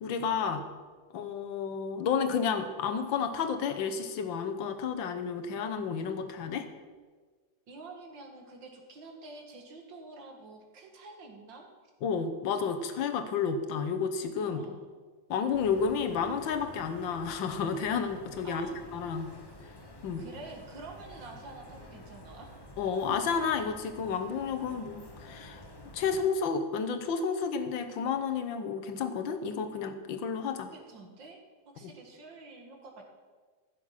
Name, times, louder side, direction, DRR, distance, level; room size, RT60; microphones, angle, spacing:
voice 1, 0.0-0.7 1.1-6.6 12.0-14.6 15.3-19.3 20.0-20.3 22.8-25.6 25.9-30.7 31.8-31.9, left 6 dB, 90° left, 8 dB, 1.7 m, -31 dB
voice 2, 7.7-11.7 14.4-14.9 18.4-18.8 20.2-22.5 30.7-31.4 31.7-33.0, right 3 dB, 75° right, 2 dB, 2.4 m, -48 dB
sound 1, 15.5-26.3, left 1 dB, 20° left, 0.7 m, -50 dB
15.0 x 7.1 x 5.8 m, 1.4 s
omnidirectional pair, 2.0 m